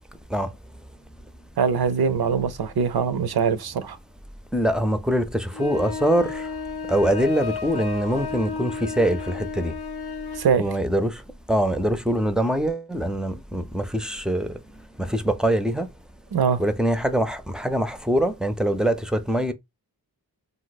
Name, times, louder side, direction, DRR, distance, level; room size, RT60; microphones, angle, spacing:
voice 1, 1.6-4.0 10.3-10.7 16.3-16.6, right 6 dB, 70° right, 0.5 m, -22 dB
voice 2, 4.5-6.4 6.9-9.7 10.6-11.1 11.5-14.5 15.0-15.9 16.6-19.5, right 1 dB, ahead, 0.5 m, -23 dB
sound 1, 5.5-10.5, left 5 dB, 75° left, 0.5 m, -32 dB
2.6 x 2.1 x 4.0 m
cardioid pair, 40°, 39 cm